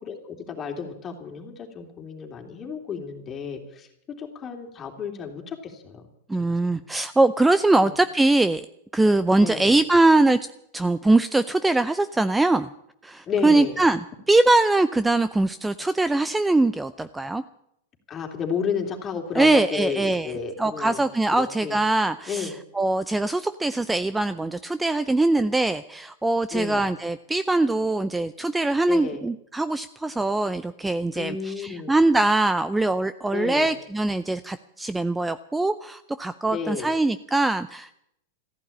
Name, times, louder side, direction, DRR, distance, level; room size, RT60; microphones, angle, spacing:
voice 1, 0.0-6.0 6.3-6.7 7.8-8.0 9.4-9.8 13.2-13.8 18.1-21.0 21.3-21.8 22.3-22.5 26.5-26.8 28.8-29.2 31.1-31.9 33.3-33.7 36.5-36.9, left 6 dB, 25° left, 2 dB, 3.2 m, -32 dB
voice 2, 6.3-8.7 8.9-10.4 10.7-12.7 13.0-14.0 14.3-17.4 19.4-20.3 20.6-37.9, right 2 dB, 5° right, 13 dB, 0.5 m, -22 dB
14.5 x 11.0 x 8.7 m, 0.76 s
hypercardioid pair, 125°, 0 cm